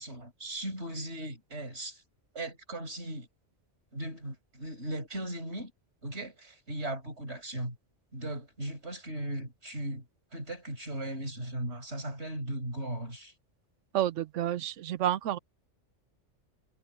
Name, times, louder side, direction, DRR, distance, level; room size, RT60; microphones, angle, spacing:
voice 1, 0.0-2.0 2.3-3.3 3.9-5.7 6.0-7.8 8.1-10.0 10.3-13.3, right 1 dB, 65° right, 6.7 m, -37 dB
voice 2, 13.9-15.4, right 12 dB, 80° right, 1.0 m, -29 dB
omnidirectional pair, 1.2 m